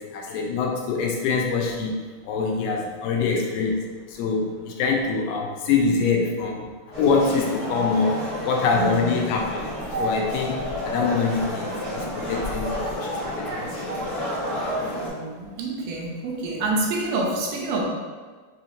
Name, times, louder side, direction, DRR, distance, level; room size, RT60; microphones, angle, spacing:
voice 1, 0.0-2.0 2.2-6.7 7.0-9.6 10.0-13.9, left 4 dB, 90° left, 0 dB, 2.3 m, -25 dB
sound 1, 6.9-15.1, equal, 40° left, 1.6 m, -30 dB
voice 2, 8.7-9.2 14.9-17.9, right 2 dB, 80° right, -1 dB, 2.3 m, -27 dB
6.8 x 2.8 x 2.5 m, 1.5 s
omnidirectional pair, 3.8 m